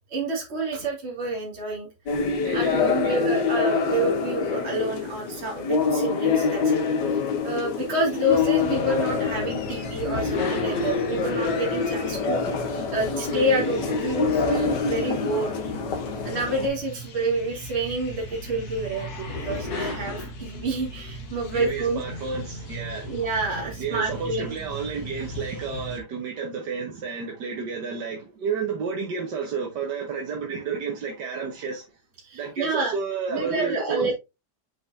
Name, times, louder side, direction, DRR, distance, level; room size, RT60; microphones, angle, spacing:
voice 1, 0.1-1.9 2.5-6.8 7.4-12.4 12.9-15.5 16.2-22.0 23.0-24.5 32.2-32.9 33.3-34.1, right 2 dB, 40° right, 2.4 m, -28 dB
sound 1, 2.1-16.7, left 5 dB, 80° left, 1.7 m, -26 dB
voice 2, 2.4-3.2 21.5-23.1 23.8-31.8 32.3-34.1, right 5 dB, 80° right, 1.8 m, -31 dB
sound 2, 8.3-26.0, left 1 dB, 65° left, 1.7 m, -37 dB
6.9 x 5.1 x 2.7 m
omnidirectional pair, 1.8 m